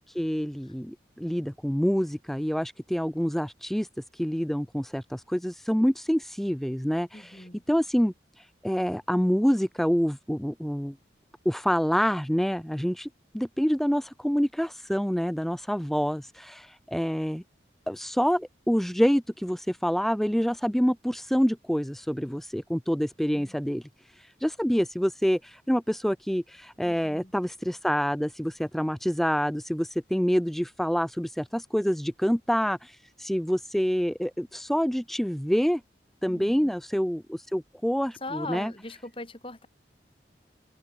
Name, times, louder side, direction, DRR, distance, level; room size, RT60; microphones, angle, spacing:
voice 1, 0.0-3.9 4.1-11.0 11.5-13.1 13.3-17.4 17.9-35.8 36.2-38.7, equal, ahead, 0.5 m, -27 dB
voice 2, 7.1-7.6 23.3-23.5 26.8-27.3 36.3-36.7 38.2-39.7, left 2 dB, 30° left, 6.7 m, -40 dB
head